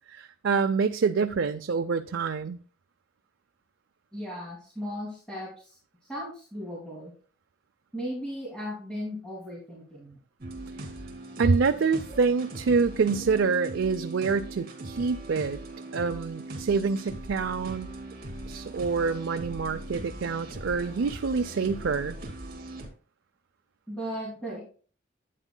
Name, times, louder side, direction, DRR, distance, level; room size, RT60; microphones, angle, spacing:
voice 1, 0.1-2.6 11.4-15.6 15.9-17.9 18.5-22.2, right 5 dB, 80° right, 0.5 m, -26 dB
voice 2, 4.1-5.8 6.1-7.1 7.9-10.2 23.9-24.6, equal, 5° left, 2.6 m, -36 dB
sound 1, 10.4-22.9, right 2 dB, 50° right, 2.4 m, -40 dB
11.0 x 9.0 x 2.2 m
head